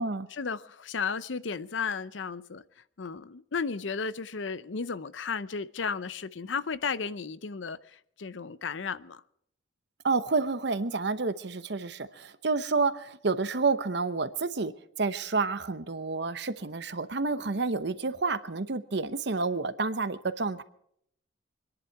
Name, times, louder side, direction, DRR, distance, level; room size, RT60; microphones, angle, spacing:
voice 1, 0.3-2.6 3.0-9.2, left 5 dB, 80° left, 0.7 m, -34 dB
voice 2, 10.0-14.7 15.0-20.6, right 4 dB, 65° right, 0.9 m, -29 dB
25.0 x 11.0 x 4.6 m
head